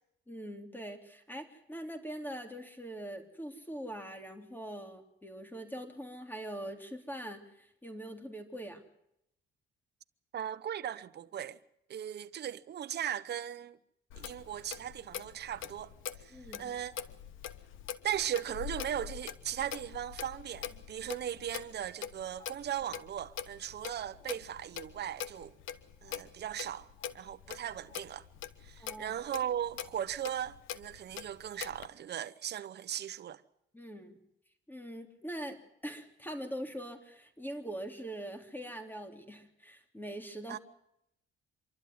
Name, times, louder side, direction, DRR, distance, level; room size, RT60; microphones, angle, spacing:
voice 1, 0.3-8.8 16.3-16.7 28.8-29.2 33.7-34.2 34.7-40.6, right 1 dB, 10° left, 3.1 m, -43 dB
voice 2, 10.3-11.6 11.9-13.8 14.2-15.9 16.2-16.9 18.0-25.6 26.0-26.9 27.1-28.2 28.6-33.4 40.5-40.6, right 10 dB, 55° right, 1.0 m, -38 dB
Clock, 14.1-31.9, left 9 dB, 85° left, 1.2 m, -44 dB
25.5 x 12.0 x 9.5 m
cardioid pair, 90°, 20 cm